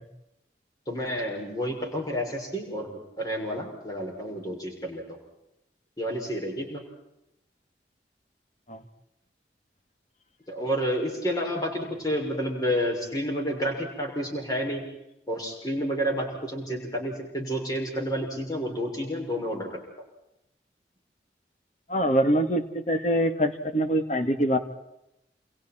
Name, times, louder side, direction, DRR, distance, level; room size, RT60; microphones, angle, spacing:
voice 1, 0.9-5.2 6.0-6.8 10.5-14.8 15.3-19.8, equal, 20° left, 0 dB, 6.2 m, -30 dB
voice 2, 21.9-24.6, equal, 40° left, 7 dB, 2.1 m, -24 dB
29.0 x 28.0 x 4.5 m, 0.86 s
head